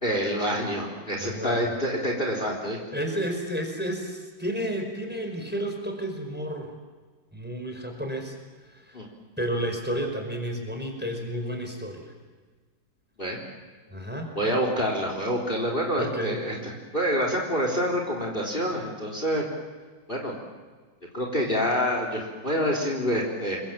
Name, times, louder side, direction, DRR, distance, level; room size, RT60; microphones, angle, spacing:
voice 1, 0.0-2.8 8.9-9.1 13.2-13.4 14.4-19.4 20.1-20.3 21.1-23.6, equal, 25° left, 1 dB, 3.9 m, -27 dB
voice 2, 1.2-1.7 2.9-6.7 7.3-8.3 8.7-9.0 9.4-12.1 13.9-14.3 15.9-16.4, equal, 5° right, 3 dB, 5.0 m, -31 dB
29.0 x 24.0 x 7.5 m, 1.4 s
omnidirectional pair, 2.1 m